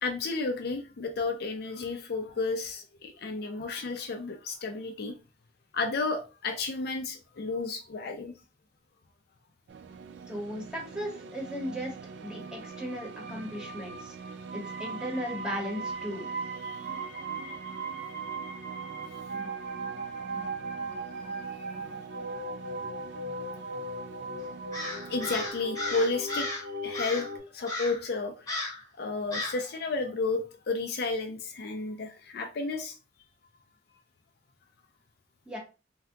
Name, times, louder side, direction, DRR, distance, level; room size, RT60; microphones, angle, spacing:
voice 1, 0.0-5.1 5.7-8.3 16.6-16.9 21.5-22.0 25.1-26.5 26.8-27.3 27.5-28.5 29.0-32.9, left 3 dB, 60° left, 0.4 m, -32 dB
sound 1, 9.7-25.5, right 5 dB, 70° right, 0.3 m, -45 dB
voice 2, 10.3-11.9 12.2-14.1 14.5-16.3 35.5-35.6, equal, 5° right, 1.0 m, -36 dB
sound 2, 12.2-27.4, right 2 dB, 50° right, 0.8 m, -38 dB
Crow, 24.7-26.7 26.9-27.3 27.7-28.0 28.5-28.8 29.3-29.6, left 2 dB, 20° left, 0.8 m, -35 dB
2.7 x 2.2 x 3.5 m
head